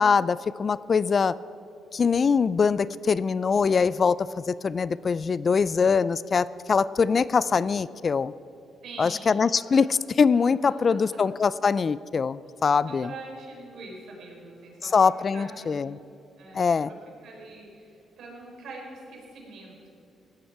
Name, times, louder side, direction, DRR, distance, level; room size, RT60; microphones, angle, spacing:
voice 1, 0.0-1.3 1.9-8.3 9.0-9.9 10.2-13.1 14.9-16.0 16.5-16.9, left 5 dB, 40° left, 18 dB, 0.3 m, -23 dB
voice 2, 8.8-9.9 10.6-11.0 12.5-12.6 12.9-16.0 16.4-17.0 17.2-19.9, right 3 dB, 70° right, -1 dB, 4.3 m, -44 dB
17.0 x 13.5 x 4.7 m, 2.7 s
cardioid pair, 90°, 0 cm